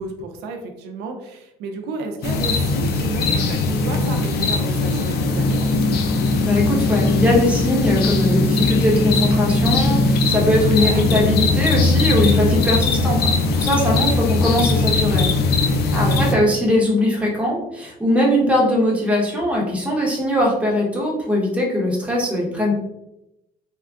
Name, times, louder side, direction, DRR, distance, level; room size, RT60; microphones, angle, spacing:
voice 1, 0.0-5.7 10.5-11.1 15.9-16.4, right 3 dB, 85° right, 4 dB, 0.5 m, -32 dB
sound 1, 2.2-16.3, left 3 dB, 70° left, 0.4 m, -19 dB
voice 2, 6.4-15.3 15.6-22.7, left 1 dB, 5° right, -3 dB, 0.9 m, -20 dB
3.5 x 2.2 x 2.4 m, 0.87 s
cardioid pair, 110°, 17 cm